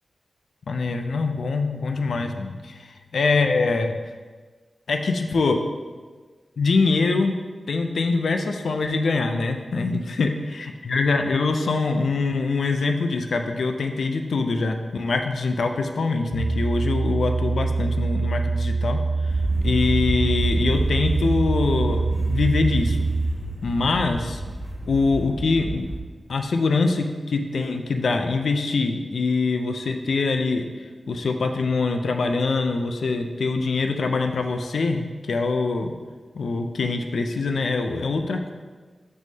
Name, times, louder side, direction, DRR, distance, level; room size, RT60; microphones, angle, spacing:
voice 1, 0.7-3.9 4.9-5.6 6.6-7.4 7.7-19.0 19.6-23.0 23.6-24.4 24.9-25.8 26.3-30.7 31.1-35.9 36.3-38.5, left 3 dB, 80° left, 5 dB, 0.4 m, -24 dB
sound 1, 16.3-23.3, right 3 dB, 30° left, 0.9 m, -24 dB
sound 2, 19.3-26.0, right 1 dB, 15° right, 0.8 m, -30 dB
6.1 x 5.5 x 2.8 m, 1.4 s
wide cardioid pair, 145°, 0 cm